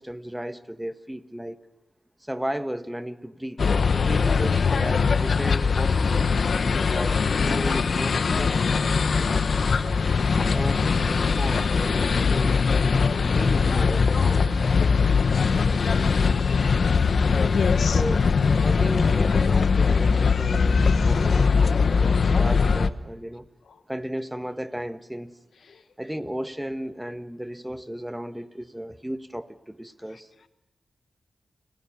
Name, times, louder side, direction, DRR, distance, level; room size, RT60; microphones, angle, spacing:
voice 1, 0.0-1.6 2.2-3.6 3.9-6.4 6.8-9.5 10.3-12.7 13.3-14.5 17.9-18.2 18.6-23.5 23.9-25.4 26.0-30.3, equal, 5° right, 1.4 m, -35 dB
sound 1, 3.6-22.9, left 5 dB, 65° left, 1.0 m, -21 dB
voice 2, 17.4-18.0 20.3-21.4, left 5 dB, 85° left, 1.3 m, -33 dB
29.5 x 18.5 x 7.2 m
cardioid pair, 70°, 0 cm